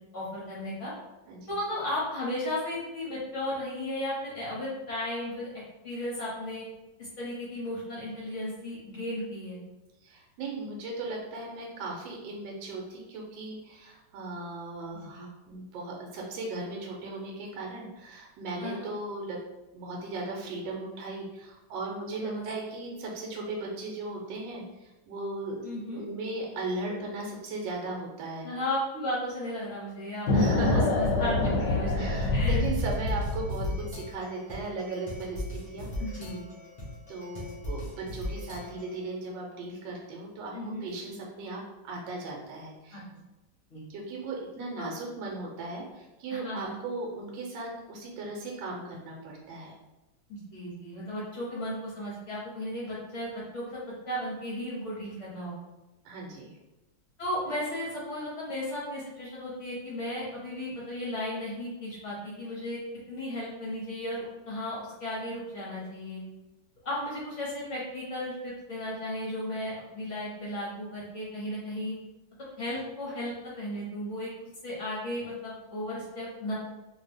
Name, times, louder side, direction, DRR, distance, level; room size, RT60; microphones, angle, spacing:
voice 1, 0.1-0.9 1.5-5.5 5.8-6.7 7.0-9.6 15.1-15.2 18.6-18.8 22.2-22.4 25.6-26.0 28.4-30.3 30.7-32.6 36.0-36.4 40.5-40.9 42.9-43.0 43.7-43.8 44.8-44.9 46.3-46.7 50.3-55.5 57.2-62.8 63.1-66.2 66.8-72.0 72.6-74.3 74.6-76.5, left 1 dB, 55° left, -6 dB, 0.9 m, -35 dB
voice 2, 10.0-19.4 19.7-28.5 30.3-30.9 31.9-36.2 37.1-40.6 40.8-43.0 43.9-49.8 56.0-56.6, right 2 dB, 75° right, -1 dB, 1.3 m, -37 dB
sound 1, 30.3-34.0, left 2 dB, 75° left, 1.1 m, -26 dB
sound 2, 32.2-39.1, left 1 dB, 30° left, 0.6 m, -39 dB
2.7 x 2.6 x 3.4 m, 1.1 s
omnidirectional pair, 2.1 m